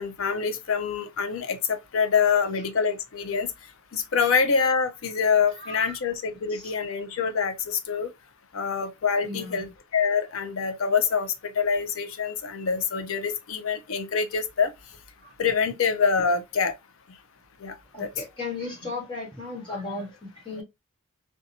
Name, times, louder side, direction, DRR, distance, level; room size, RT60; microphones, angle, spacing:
voice 1, 0.0-3.5 3.9-8.1 8.5-9.7 9.9-14.7 15.4-16.7 17.6-18.1, left 6 dB, 70° left, 0.5 m, -25 dB
voice 2, 5.6-6.0 6.5-6.7 9.2-9.6 15.2-15.3 17.9-20.6, left 3 dB, 25° left, 1.2 m, -35 dB
2.7 x 2.2 x 2.6 m
head